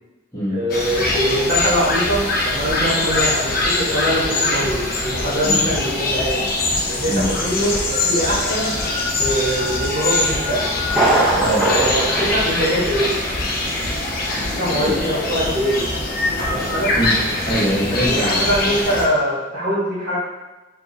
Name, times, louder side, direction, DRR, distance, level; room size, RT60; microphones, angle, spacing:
voice 1, 0.5-6.5 6.9-8.8 9.1-10.7 11.7-13.2 14.5-15.9 16.5-16.9 18.1-20.2, equal, 45° right, -7 dB, 1.2 m, -22 dB
sound 1, 0.7-19.1, left 2 dB, 45° left, 0.6 m, -22 dB
Thunder, 10.9-13.4 13.7-13.8 14.4-14.5, right 2 dB, ahead, 0.6 m, -21 dB
voice 2, 11.3-11.7 14.8-15.0 17.0-17.2 17.4-18.7, equal, 15° left, -10 dB, 1.2 m, -23 dB
4.7 x 2.6 x 2.7 m, 1.1 s
head